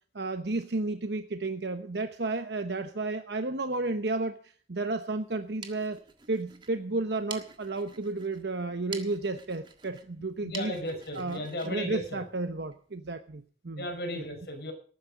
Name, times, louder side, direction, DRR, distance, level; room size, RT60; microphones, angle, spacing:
voice 1, 0.1-6.0 6.3-10.8 11.1-13.9 14.1-14.2, right 2 dB, 80° right, 8 dB, 1.0 m, -32 dB
sound 1, 5.3-12.8, right 5 dB, 25° right, 1.6 m, -48 dB
voice 2, 10.4-12.2 13.8-14.7, left 1 dB, 65° left, 3 dB, 5.6 m, -35 dB
18.5 x 9.6 x 5.2 m, 0.43 s
head